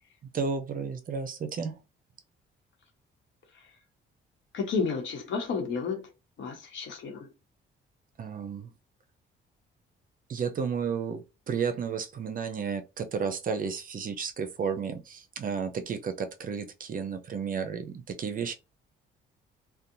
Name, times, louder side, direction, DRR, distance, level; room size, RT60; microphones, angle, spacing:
voice 1, 0.3-1.8 8.2-8.7 10.3-18.5, right 6 dB, 45° right, 0.5 m, -32 dB
voice 2, 4.5-6.1 6.4-7.3, left 5 dB, 70° left, 1.0 m, -31 dB
2.7 x 2.2 x 2.5 m
cardioid pair, 90°, 20 cm